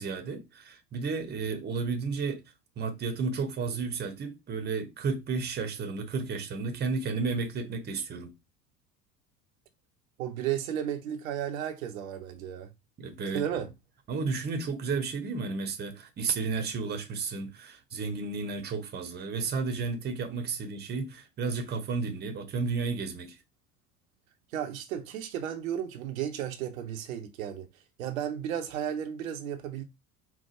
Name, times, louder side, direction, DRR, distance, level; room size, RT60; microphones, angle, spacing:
voice 1, 0.0-2.4 2.8-8.3 13.0-13.6 14.1-23.4, right 4 dB, 25° right, 0.8 m, -32 dB
voice 2, 10.2-12.7 13.3-13.7 24.5-27.7 28.0-29.8, right 10 dB, 65° right, 0.7 m, -34 dB
4.5 x 2.0 x 4.4 m
figure-of-eight pair, 70°, 44 cm